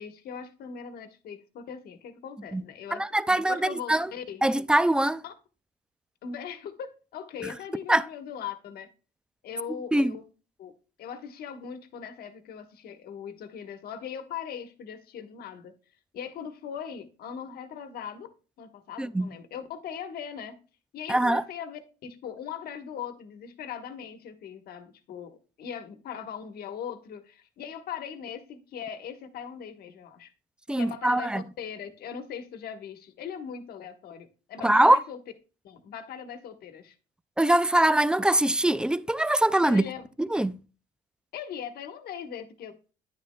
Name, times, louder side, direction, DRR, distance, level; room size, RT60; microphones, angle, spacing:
voice 1, 0.0-4.4 5.2-5.3 6.2-8.9 9.4-10.2 10.6-10.7 11.0-15.7 16.1-18.3 18.6-20.6 20.9-30.3 30.8-35.2 35.6-36.9 39.6-40.1 41.3-42.9, left 8 dB, 65° left, 1.2 m, -40 dB
voice 2, 2.9-4.1 4.4-5.2 7.9-8.1 9.9-10.2 19.0-19.3 21.1-21.4 30.7-31.4 34.6-35.0 37.4-39.8 40.2-40.6, right 1 dB, 5° right, 0.3 m, -23 dB
10.0 x 9.5 x 2.2 m
cardioid pair, 110°, 17 cm